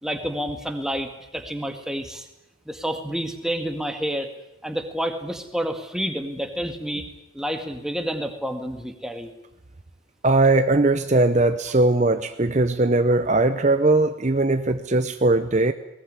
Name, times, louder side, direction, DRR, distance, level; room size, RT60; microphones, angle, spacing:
voice 1, 0.0-2.3 2.7-4.3 4.6-7.1 7.3-9.3, equal, 5° right, 6 dB, 1.9 m, -29 dB
voice 2, 10.2-15.7, right 2 dB, 35° right, 9 dB, 0.8 m, -19 dB
20.5 x 18.5 x 9.7 m, 0.89 s
head